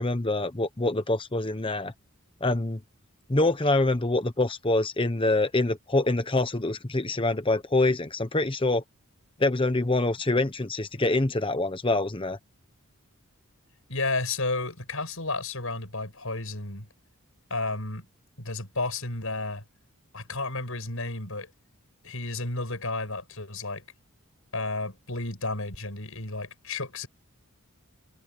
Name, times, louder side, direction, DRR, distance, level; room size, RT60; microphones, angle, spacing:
voice 1, 0.0-1.9 2.4-2.8 3.3-8.8 9.4-12.4, left 2 dB, 25° left, 1.0 m, -25 dB
voice 2, 13.9-16.9 17.5-18.0 18.4-19.6 20.1-21.5 22.0-23.8 24.5-27.1, left 3 dB, 65° left, 7.0 m, -32 dB
head